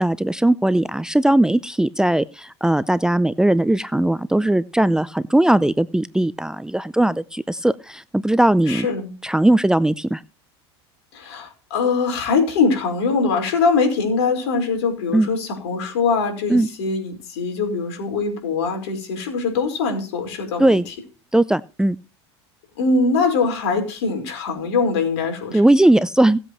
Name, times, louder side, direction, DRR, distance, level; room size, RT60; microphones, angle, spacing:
voice 1, 0.0-8.9 9.2-10.2 15.1-15.3 16.5-16.7 20.6-20.9 21.3-22.0 25.5-26.4, right 1 dB, 5° right, 16 dB, 0.5 m, -18 dB
voice 2, 8.7-9.1 11.1-20.9 22.8-25.6, left 4 dB, 75° left, 4 dB, 4.9 m, -22 dB
18.0 x 7.9 x 3.1 m, 0.33 s
hypercardioid pair, 95°, 14 cm